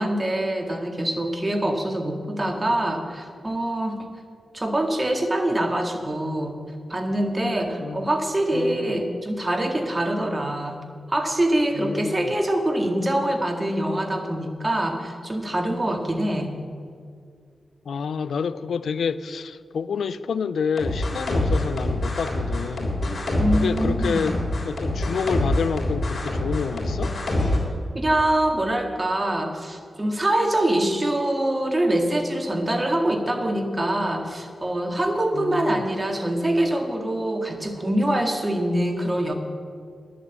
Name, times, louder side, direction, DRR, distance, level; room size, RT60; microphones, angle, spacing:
voice 1, 0.0-4.0 4.5-6.6 6.9-10.8 11.1-16.5 23.4-24.3 27.9-39.3, right 1 dB, 30° right, 1.9 m, -24 dB
voice 2, 8.5-9.0 11.7-12.3 17.9-23.0 23.5-24.4 24.7-27.1 35.3-35.8, left 6 dB, 85° left, 0.4 m, -28 dB
sound 1, 20.8-27.6, left 1 dB, 55° left, 3.6 m, -25 dB
11.0 x 7.7 x 8.1 m
cardioid pair, 50°, 0 cm